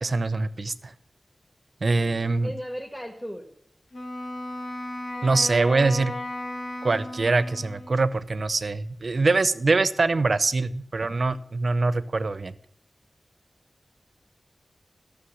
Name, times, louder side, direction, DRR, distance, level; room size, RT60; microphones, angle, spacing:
voice 1, 0.0-0.9 1.8-2.5 5.2-6.1 6.8-12.5, right 3 dB, 65° right, 15 dB, 0.6 m, -23 dB
voice 2, 1.9-3.5, equal, 5° left, 1 dB, 1.5 m, -37 dB
Wind instrument woodwind instrument, 3.9-8.1, left 1 dB, 65° left, 1.6 m, -35 dB
13.0 x 6.7 x 7.0 m, 0.69 s
wide cardioid pair, 80°, 0 cm